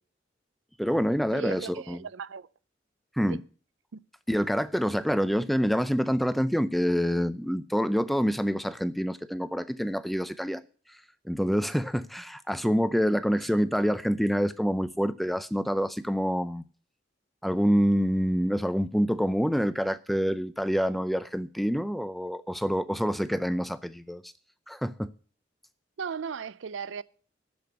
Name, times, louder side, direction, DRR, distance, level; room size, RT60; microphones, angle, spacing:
voice 1, 0.8-2.0 3.2-3.4 4.3-10.6 11.3-16.6 17.4-24.3 24.7-25.1, equal, ahead, 0.4 m, -27 dB
voice 2, 1.3-2.5 3.3-3.4 3.9-4.0 12.6-12.7 26.0-27.0, right 6 dB, 90° right, 0.5 m, -37 dB
12.5 x 5.1 x 8.0 m
head